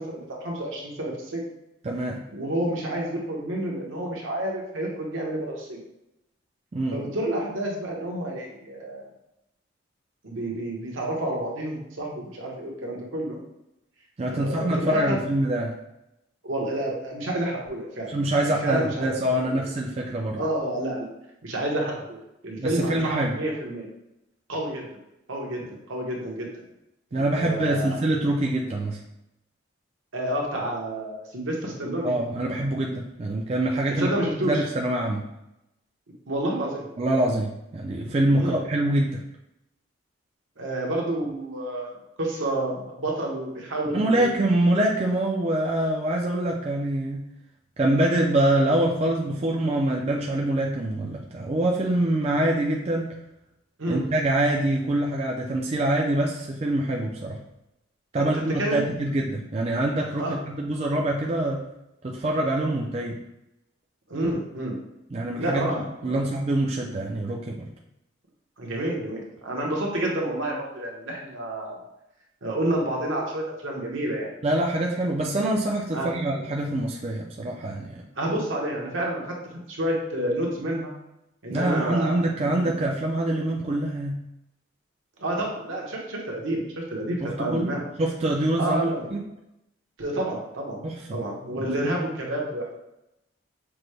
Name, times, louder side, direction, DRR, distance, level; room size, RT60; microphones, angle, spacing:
voice 1, 0.0-1.4 2.3-5.8 6.9-9.1 10.2-13.4 14.3-15.2 16.4-18.1 18.4-19.1 19.5-19.6 20.4-21.1 21.4-22.2 22.4-23.9 24.5-24.9 25.3-25.6 25.9-26.5 27.1-28.0 30.1-32.1 34.0-34.6 36.3-36.8 38.4-38.6 40.6-44.4 53.8-54.0 58.1-58.8 60.2-60.3 64.1-64.8 65.4-66.2 68.6-71.8 72.4-74.3 75.9-76.1 78.2-79.3 79.7-80.9 81.4-82.2 85.2-88.1 88.6-89.1 90.0-90.8 91.1-92.8, right 1 dB, 75° right, -2 dB, 1.0 m, -29 dB
voice 2, 1.8-2.2 6.7-7.0 14.2-15.7 18.1-20.4 22.6-23.3 27.1-29.0 32.0-34.1 34.4-35.2 37.0-39.2 43.9-47.2 47.8-53.1 53.9-57.4 58.1-61.6 62.0-63.2 65.1-65.8 66.0-67.7 74.4-78.0 81.5-84.2 87.2-88.8 89.1-89.2 90.8-91.0 91.5-91.7, right 1 dB, 30° right, -1 dB, 0.4 m, -25 dB
5.9 x 2.2 x 3.2 m, 0.86 s
head